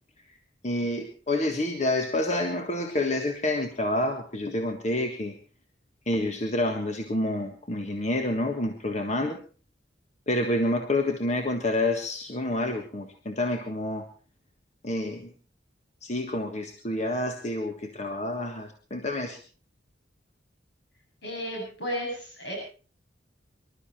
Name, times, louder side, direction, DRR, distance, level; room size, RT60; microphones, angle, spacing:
voice 1, 0.6-5.3 6.1-9.4 10.3-14.1 14.8-15.3 16.0-19.4, left 1 dB, 40° left, 4 dB, 1.6 m, -28 dB
voice 2, 21.2-22.6, equal, 65° left, -1 dB, 7.9 m, -33 dB
25.0 x 12.5 x 4.4 m, 0.37 s
head